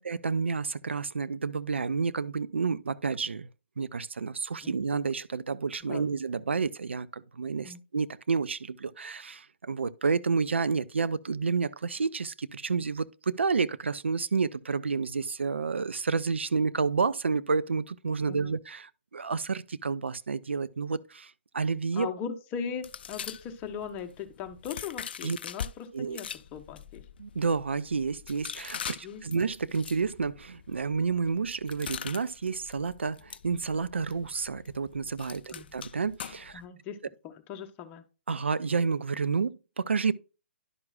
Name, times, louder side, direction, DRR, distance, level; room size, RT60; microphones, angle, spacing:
voice 1, 0.0-3.5 3.8-22.1 25.2-25.4 25.9-26.2 27.2-36.6 38.3-40.1, right 5 dB, 80° right, 0.4 m, -30 dB
voice 2, 21.9-27.0 29.0-29.4 35.5-35.7 36.5-37.0 37.2-38.0, left 7 dB, 25° left, 1.0 m, -39 dB
sound 1, 22.8-25.7 26.1-36.7, left 8 dB, 55° left, 0.4 m, -43 dB
11.0 x 6.0 x 2.4 m
figure-of-eight pair, 130°, 6 cm